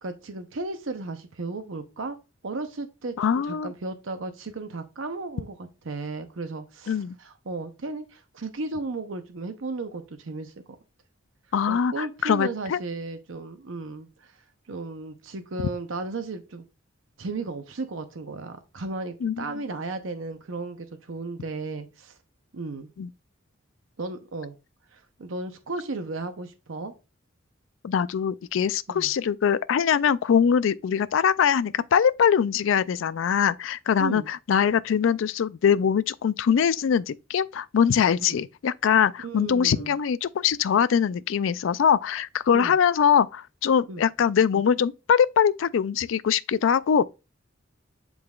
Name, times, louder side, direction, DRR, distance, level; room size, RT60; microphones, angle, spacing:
voice 1, 0.0-2.2 2.4-3.1 3.5-5.6 5.8-10.5 11.7-14.3 14.7-16.6 17.2-22.2 22.5-22.9 24.0-24.6 24.9-26.9 28.9-29.1 34.0-34.3 38.2-38.4 39.2-40.0 42.5-42.7 43.9-44.0, right 3 dB, 75° right, 0.7 m, -34 dB
voice 2, 3.2-3.7 6.9-7.2 11.5-12.8 19.2-19.5 23.0-23.1 27.8-47.0, left 7 dB, 70° left, 0.3 m, -22 dB
10.5 x 3.9 x 2.4 m
head